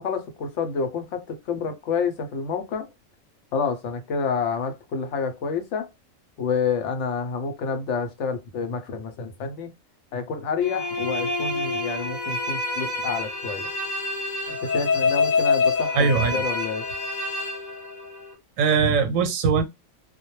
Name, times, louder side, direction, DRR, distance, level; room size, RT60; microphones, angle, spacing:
voice 1, 0.0-2.9 3.5-5.9 6.4-9.7 10.1-13.7 14.5-16.9, left 5 dB, 70° left, 0.8 m, -28 dB
sound 1, 10.6-18.3, left 4 dB, 40° left, 0.8 m, -26 dB
voice 2, 15.9-16.4 18.6-19.6, right 5 dB, 90° right, 1.0 m, -21 dB
2.2 x 2.1 x 2.9 m
omnidirectional pair, 1.4 m